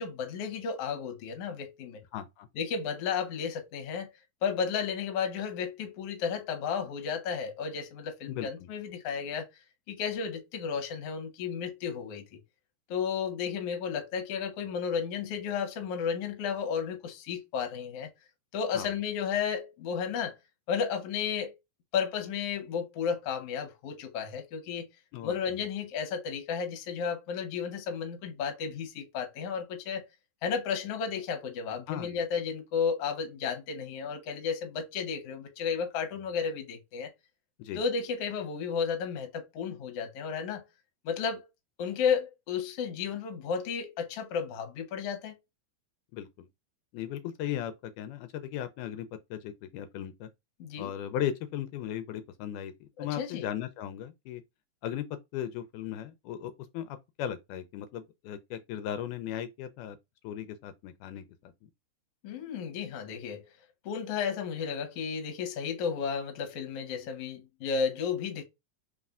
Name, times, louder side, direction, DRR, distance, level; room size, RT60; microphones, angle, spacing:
voice 1, 0.0-2.0 2.6-4.1 4.4-9.5 9.9-12.4 12.9-18.1 18.5-20.3 20.7-21.5 21.9-24.9 25.2-30.1 30.4-37.1 37.7-40.6 41.0-41.5 41.8-45.3 50.6-50.9 53.0-53.5 62.2-63.5 63.8-68.4, left 6 dB, 65° left, 1.7 m, -33 dB
voice 2, 2.1-2.5 8.3-8.5 18.7-18.9 25.1-25.6 31.9-32.2 37.6-37.8 46.1-46.5 46.9-50.3 50.8-54.4 54.8-55.1 55.3-60.0 60.2-61.2, left 10 dB, 80° left, 2.0 m, -37 dB
4.2 x 3.7 x 2.3 m
omnidirectional pair, 3.6 m